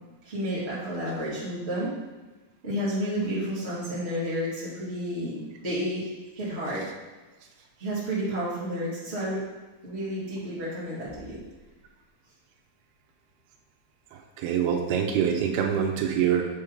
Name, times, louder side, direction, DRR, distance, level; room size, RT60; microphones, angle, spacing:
voice 1, 0.2-1.9 2.6-6.1 6.3-6.9 7.8-9.4 9.8-11.4, equal, 25° right, -8 dB, 1.7 m, -31 dB
voice 2, 14.1-16.4, right 8 dB, 85° right, 2 dB, 2.7 m, -25 dB
8.4 x 3.6 x 4.7 m, 1.2 s
omnidirectional pair, 4.6 m